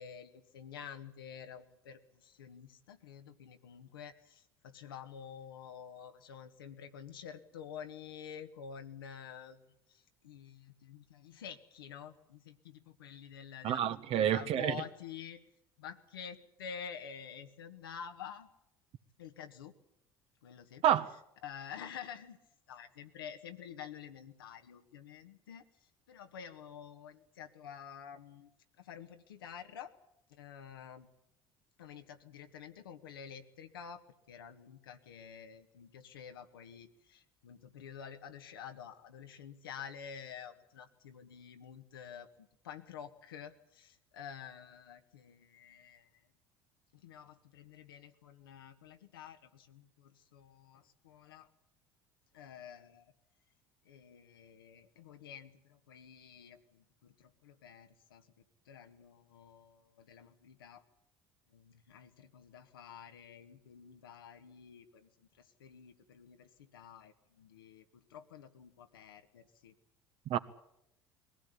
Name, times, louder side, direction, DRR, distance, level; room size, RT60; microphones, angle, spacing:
voice 1, 0.0-13.8 14.1-15.4 15.8-18.5 19.2-19.7 20.4-20.8 21.4-22.4 22.7-25.6 26.1-28.5 28.8-29.9 30.3-31.1 31.8-34.0 34.3-46.1 46.9-51.5 52.3-53.1 53.8-58.3 58.6-60.8 61.5-69.7, left 8 dB, 85° left, 1.7 m, -49 dB
voice 2, 13.6-14.8 20.8-21.1 70.3-70.4, right 10 dB, 55° right, 1.4 m, -28 dB
22.0 x 16.5 x 10.0 m
hypercardioid pair, 65°, 12 cm